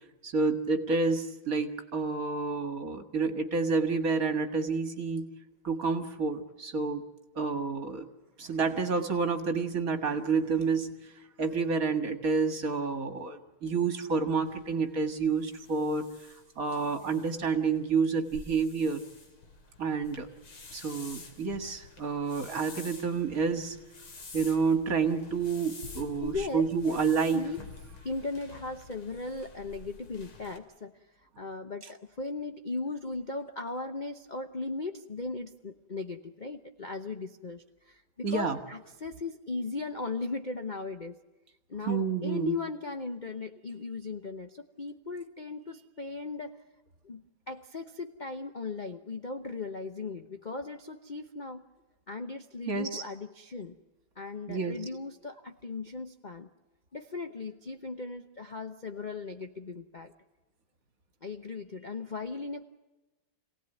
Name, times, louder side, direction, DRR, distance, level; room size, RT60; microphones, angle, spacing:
voice 1, 0.2-5.3 5.6-7.0 7.4-8.1 8.4-10.9 11.4-16.0 16.6-19.0 19.8-20.3 20.7-23.8 24.3-27.4 38.2-38.6 41.9-42.5 52.7-53.0 54.5-54.8, right 4 dB, 45° right, 7 dB, 2.1 m, -29 dB
sound 1, 14.4-30.6, left 2 dB, 85° left, 3.6 m, -49 dB
voice 2, 26.2-27.0 27.3-27.6 28.0-30.9 31.2-41.2 41.7-46.6 47.0-51.6 52.1-53.8 54.2-56.5 56.9-60.1 61.2-62.6, left 3 dB, 50° left, 7 dB, 0.5 m, -37 dB
27.0 x 18.0 x 9.1 m, 1.1 s
omnidirectional pair, 2.3 m